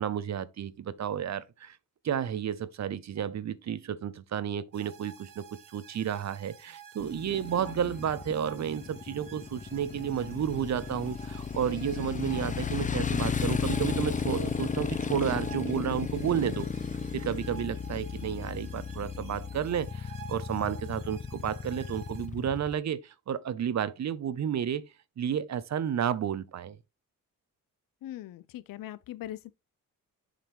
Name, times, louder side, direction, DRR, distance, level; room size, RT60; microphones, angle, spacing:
voice 1, 0.0-1.8 2.0-5.4 5.7-16.7 17.1-24.8 25.2-26.8, right 9 dB, 55° right, 0.7 m, -32 dB
sound 1, 4.7-22.3, right 8 dB, 75° right, 1.2 m, -51 dB
Motorcycle, 7.0-22.7, left 5 dB, 25° left, 0.5 m, -34 dB
voice 2, 28.0-29.5, left 13 dB, 80° left, 0.5 m, -41 dB
7.4 x 5.2 x 3.0 m
cardioid pair, 85°, 34 cm